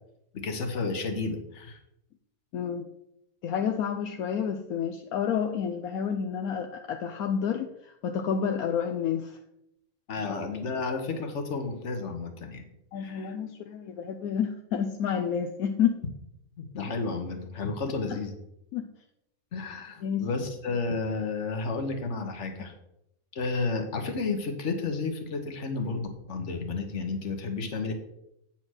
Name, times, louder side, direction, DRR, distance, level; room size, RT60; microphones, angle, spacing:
voice 1, 0.3-1.8 10.1-12.6 13.0-13.4 16.6-18.3 19.5-22.7 23.3-27.9, left 4 dB, 55° left, 5 dB, 1.5 m, -32 dB
voice 2, 2.5-2.9 3.4-7.7 8.0-9.4 12.9-16.0 18.7-18.9 20.0-20.3, left 7 dB, 75° left, 5 dB, 1.1 m, -29 dB
8.7 x 4.4 x 6.2 m, 0.80 s
omnidirectional pair, 1.5 m